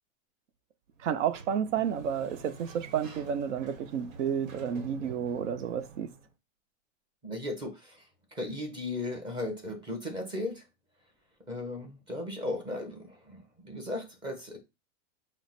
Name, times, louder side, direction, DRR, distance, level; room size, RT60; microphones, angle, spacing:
voice 1, 1.0-6.1, right 8 dB, 70° right, 0.7 m, -31 dB
Sliding door, 1.0-6.3, right 4 dB, 90° right, 1.1 m, -47 dB
voice 2, 7.2-10.6 11.5-14.6, left 2 dB, 10° right, 0.7 m, -36 dB
4.5 x 2.1 x 4.1 m
supercardioid pair, 165°, 38 cm